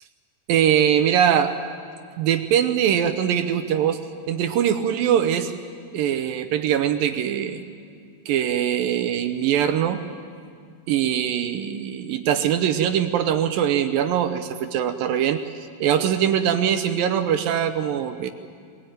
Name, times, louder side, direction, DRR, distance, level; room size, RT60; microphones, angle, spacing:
voice 1, 0.5-1.5 2.2-4.0 4.3-5.5 5.9-7.6 8.3-10.0 10.9-15.4 15.8-18.3, right 9 dB, 75° right, 8 dB, 2.3 m, -22 dB
23.0 x 20.0 x 9.2 m, 2.2 s
omnidirectional pair, 4.7 m